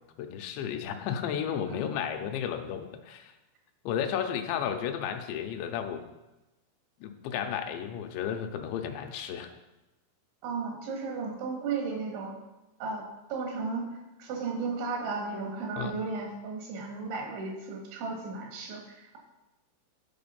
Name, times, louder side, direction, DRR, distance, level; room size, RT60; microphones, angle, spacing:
voice 1, 0.2-3.3 3.9-6.0 7.0-9.5 15.8-15.9, left 8 dB, 90° left, 5 dB, 2.9 m, -33 dB
voice 2, 1.7-2.0 10.4-12.3 12.8-19.2, right 4 dB, 85° right, 1 dB, 3.9 m, -35 dB
12.0 x 4.3 x 5.6 m, 1.0 s
omnidirectional pair, 5.1 m